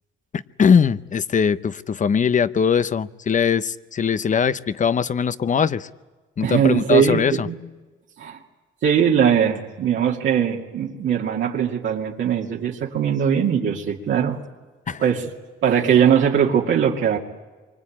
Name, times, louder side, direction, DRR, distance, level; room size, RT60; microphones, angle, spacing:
voice 1, 0.3-5.9 6.4-7.5 14.9-15.1, left 6 dB, 40° left, 15 dB, 0.9 m, -21 dB
voice 2, 6.4-7.6 8.2-8.4 8.8-14.4 15.0-15.3 15.6-17.2, right 8 dB, 70° right, -2 dB, 2.4 m, -20 dB
26.5 x 24.5 x 8.7 m, 1.3 s
cardioid pair, 90°, 20 cm